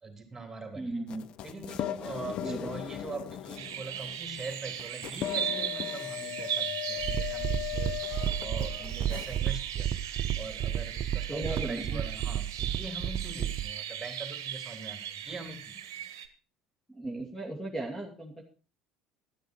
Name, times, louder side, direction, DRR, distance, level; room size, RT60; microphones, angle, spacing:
voice 1, 0.0-1.0 1.4-9.9 10.4-16.1, right 3 dB, 20° right, 5 dB, 3.3 m, -42 dB
voice 2, 0.7-1.3 2.4-2.7 11.3-12.0 16.9-18.4, right 2 dB, 10° left, 1 dB, 2.5 m, -36 dB
sound 1, 1.1-9.4, left 14 dB, 50° left, 0.5 m, -38 dB
sound 2, 3.6-16.3, right 10 dB, 70° right, 1.0 m, -38 dB
sound 3, 7.0-13.7, right 10 dB, 45° right, 0.8 m, -32 dB
12.0 x 11.5 x 4.5 m, 0.35 s
figure-of-eight pair, 60°, 2 cm